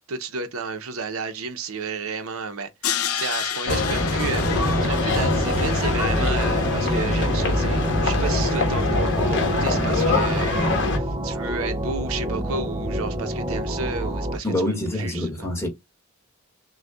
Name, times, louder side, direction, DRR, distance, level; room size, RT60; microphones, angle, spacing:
voice 1, 0.1-2.7 3.1-15.5, right 4 dB, 75° right, 0.8 m, -32 dB
Crash cymbal, 2.8-7.9, left 9 dB, 90° left, 0.7 m, -32 dB
sound 1, 3.7-11.0, left 2 dB, 55° left, 1.2 m, -23 dB
sound 2, 4.4-14.4, right 1 dB, 20° right, 0.4 m, -28 dB
voice 2, 14.4-15.7, left 1 dB, 10° left, 1.5 m, -26 dB
6.2 x 2.3 x 2.3 m
head